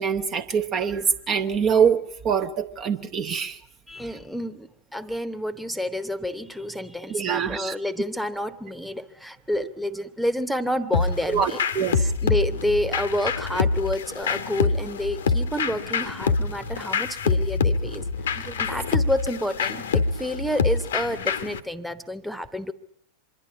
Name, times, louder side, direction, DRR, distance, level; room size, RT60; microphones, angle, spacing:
voice 1, 0.0-3.6 7.1-7.8 11.3-12.1 18.5-18.6, right 7 dB, 30° right, 7 dB, 0.8 m, -24 dB
voice 2, 3.9-11.6 12.2-22.7, left 1 dB, ahead, 15 dB, 1.0 m, -29 dB
sound 1, 10.9-21.6, left 4 dB, 65° left, 0.9 m, -26 dB
25.5 x 11.5 x 8.9 m, 0.68 s
figure-of-eight pair, 90°, 0 cm